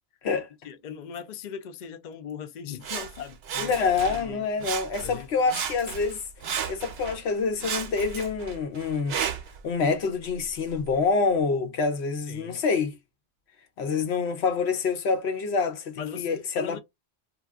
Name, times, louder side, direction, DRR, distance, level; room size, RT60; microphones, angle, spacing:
voice 1, 0.6-3.8 4.1-4.7 5.0-5.3 12.3-12.6 16.0-16.3 16.6-16.8, left 8 dB, 55° left, 0.5 m, -39 dB
Sawing, 2.8-4.3 4.6-5.2 5.5-7.2 7.6-9.6 10.3-10.4, right 7 dB, 70° right, 0.8 m, -34 dB
voice 2, 3.6-6.2 6.7-9.2 9.6-12.9 13.8-16.8, left 4 dB, 70° left, 0.9 m, -26 dB
2.4 x 2.3 x 3.4 m
omnidirectional pair, 1.1 m